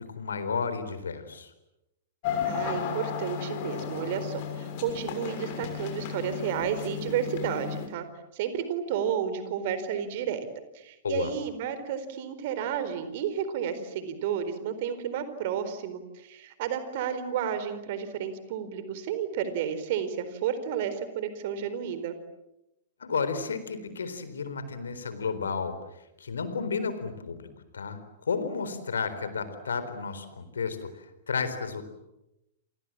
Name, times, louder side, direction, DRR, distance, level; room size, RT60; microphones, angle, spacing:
voice 1, 0.0-1.5 11.0-11.3 23.0-25.8 26.2-27.5 27.7-31.8, left 5 dB, 70° left, 11 dB, 4.2 m, -32 dB
sound 1, 2.2-7.9, left 7 dB, 45° left, 6.3 m, -34 dB
voice 2, 2.4-8.1 8.3-10.5 10.7-22.2, right 8 dB, 45° right, 11 dB, 4.2 m, -32 dB
29.0 x 27.5 x 7.5 m, 0.91 s
figure-of-eight pair, 105°, 0 cm